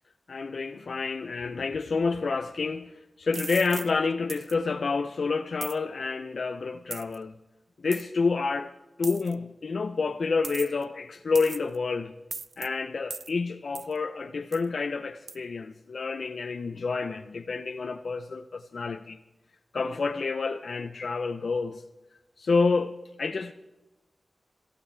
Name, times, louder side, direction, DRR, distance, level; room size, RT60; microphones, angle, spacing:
voice 1, 0.3-7.3 7.8-8.7 9.0-12.1 12.6-19.2 19.7-21.8 22.4-23.5, left 4 dB, 75° left, 0.6 m, -29 dB
sound 1, 3.3-3.9 4.3-4.5 5.6-5.8 6.9-7.2 7.9-8.0 9.0-9.3 10.4-10.8 11.4-11.8 12.3-12.7 13.1-13.3 13.8-13.9 14.5-14.7 15.3-15.4, right 4 dB, 65° right, 0.6 m, -38 dB
26.5 x 14.5 x 3.3 m
wide cardioid pair, 90°, 0 cm